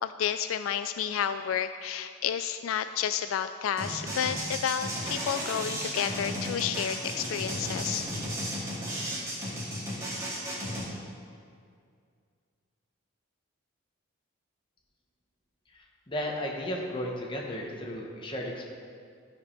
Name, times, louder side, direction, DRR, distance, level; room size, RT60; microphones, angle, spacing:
voice 1, 0.0-8.0, left 8 dB, 75° left, 11 dB, 0.3 m, -31 dB
sound 1, 3.8-10.9, equal, 15° right, 2.2 m, -34 dB
voice 2, 16.1-18.7, equal, 25° left, -1 dB, 1.3 m, -34 dB
13.0 x 5.2 x 5.6 m, 2.2 s
head